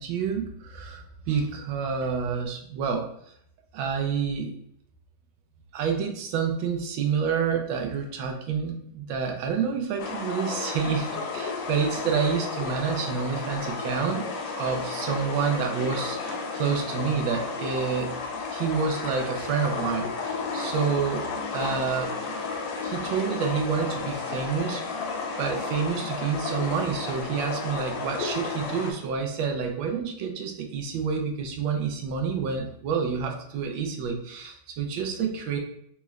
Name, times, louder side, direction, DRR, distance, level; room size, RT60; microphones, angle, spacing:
voice 1, 0.0-3.1 3.7-4.5 5.7-14.3 14.5-18.2 18.5-22.2 22.8-25.0 25.4-35.6, right 6 dB, 85° right, 4 dB, 1.4 m, -28 dB
sound 1, 10.0-28.9, left 4 dB, 75° left, 1.2 m, -33 dB
3.9 x 2.4 x 3.1 m, 0.70 s
omnidirectional pair, 2.1 m